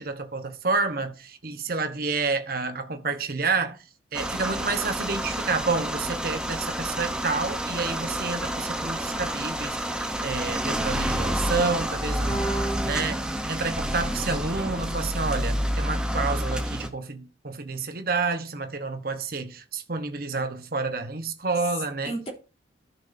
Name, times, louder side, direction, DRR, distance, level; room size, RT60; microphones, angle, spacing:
voice 1, 0.0-3.8 4.1-13.2 13.5-22.2, right 4 dB, 50° right, 1.2 m, -29 dB
sound 1, 4.1-16.9, equal, 5° right, 0.8 m, -29 dB
voice 2, 12.2-13.3 22.0-22.3, right 2 dB, 30° left, 3.2 m, -32 dB
14.0 x 6.2 x 2.7 m
head